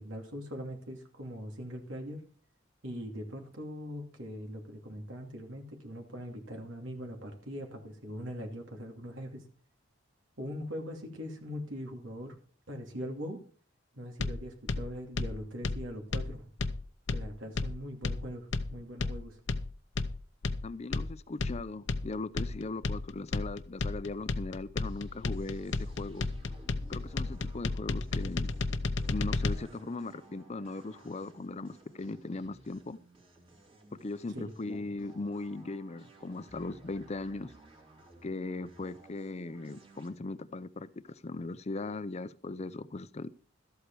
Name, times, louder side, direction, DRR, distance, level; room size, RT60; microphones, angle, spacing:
voice 1, 0.0-2.2 2.8-9.4 10.4-12.4 12.7-13.4 13.9-16.5 17.1-19.4 34.3-34.9, equal, 85° right, 2.6 m, -41 dB
sound 1, 14.2-29.6, left 3 dB, 80° left, 0.7 m, -33 dB
voice 2, 20.6-26.3 26.9-28.5 29.0-33.0 33.9-37.5 38.2-43.3, left 2 dB, 35° left, 0.5 m, -39 dB
sound 2, 24.8-40.1, right 2 dB, 30° right, 2.6 m, -56 dB
13.0 x 8.2 x 4.7 m
head